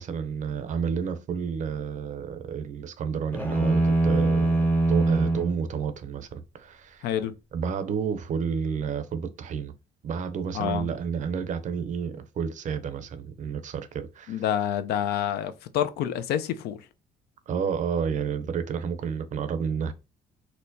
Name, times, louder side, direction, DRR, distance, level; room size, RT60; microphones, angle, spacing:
voice 1, 0.0-4.5 4.9-7.1 7.5-9.7 10.0-14.4 17.5-19.9, right 6 dB, 50° right, 0.5 m, -30 dB
sound 1, 3.3-5.6, right 2 dB, 10° left, 0.7 m, -23 dB
voice 2, 7.0-7.3 10.5-10.9 14.3-16.9, left 10 dB, 75° left, 0.4 m, -28 dB
4.3 x 2.1 x 2.6 m
cardioid pair, 110°, 17 cm